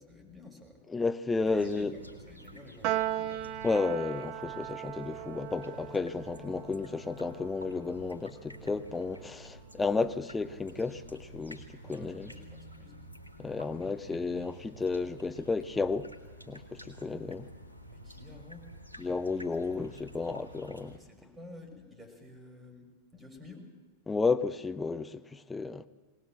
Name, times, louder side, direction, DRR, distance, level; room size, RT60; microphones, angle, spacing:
voice 1, 0.0-0.9 1.4-3.5 11.9-13.0 17.9-18.7 20.9-23.7, left 2 dB, 10° right, 5.7 m, -51 dB
voice 2, 0.9-1.9 3.6-12.3 13.4-16.1 16.5-17.5 19.0-21.0 24.1-25.8, left 4 dB, 10° left, 0.9 m, -32 dB
sound 1, 1.3-21.0, equal, 85° right, 2.1 m, -50 dB
Piano, 2.8-9.3, right 13 dB, 40° right, 0.7 m, -38 dB
21.5 x 19.0 x 7.6 m
figure-of-eight pair, 90°, 0 cm